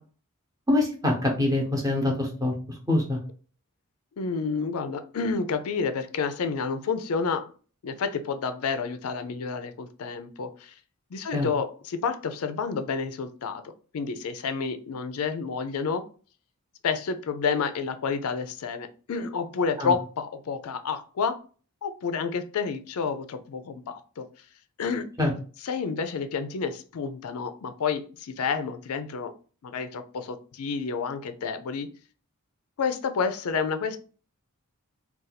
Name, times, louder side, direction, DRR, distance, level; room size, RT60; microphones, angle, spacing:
voice 1, 0.7-2.5 2.9-3.2 11.3-11.5 19.8-19.9 25.2-25.3, left 2 dB, 15° right, 0 dB, 0.8 m, -24 dB
voice 2, 4.2-7.5 7.8-10.7 11.1-16.0 16.8-21.4 21.8-24.3 24.8-25.1 25.6-29.3 29.6-31.9 32.8-34.0, left 5 dB, 85° left, 9 dB, 0.4 m, -30 dB
2.5 x 2.3 x 4.0 m, 0.38 s
head